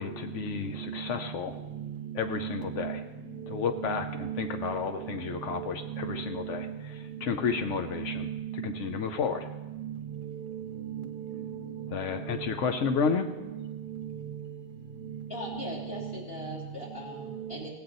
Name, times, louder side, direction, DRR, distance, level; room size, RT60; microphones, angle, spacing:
voice 1, 0.0-1.5 2.1-3.0 3.5-6.7 7.2-8.3 8.6-9.5 11.9-13.3, left 6 dB, 85° left, 6 dB, 1.0 m, -31 dB
voice 2, 2.1-3.0 3.7-5.1 5.5-6.7 7.9-8.7 9.7-9.9 10.4-11.5 12.3-12.5 13.1-14.1 15.5-15.6 15.9-16.1 17.2-17.5, right 10 dB, 60° right, 4 dB, 0.9 m, -37 dB
voice 3, 15.3-17.7, left 1 dB, 55° left, -5 dB, 3.4 m, -40 dB
16.5 x 8.6 x 4.0 m, 1.1 s
omnidirectional pair, 1.2 m